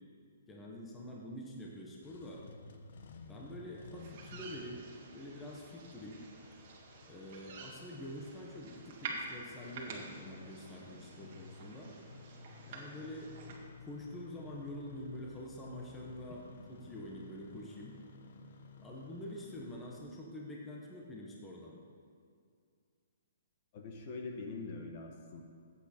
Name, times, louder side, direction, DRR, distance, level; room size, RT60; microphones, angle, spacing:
voice 1, 0.5-2.4 3.3-4.8 5.1-6.2 7.1-11.9 12.7-13.3 13.9-16.5 16.8-18.0 18.8-21.8, left 1 dB, 10° left, -3 dB, 1.1 m, -46 dB
Engine starting, 1.9-20.0, left 4 dB, 55° left, 0.9 m, -54 dB
sound 1, 4.0-13.6, right 3 dB, 35° right, 1.7 m, -49 dB
voice 2, 23.7-25.4, left 3 dB, 35° left, 2 dB, 1.2 m, -43 dB
13.5 x 8.4 x 4.4 m, 2.3 s
hypercardioid pair, 170°, 0 cm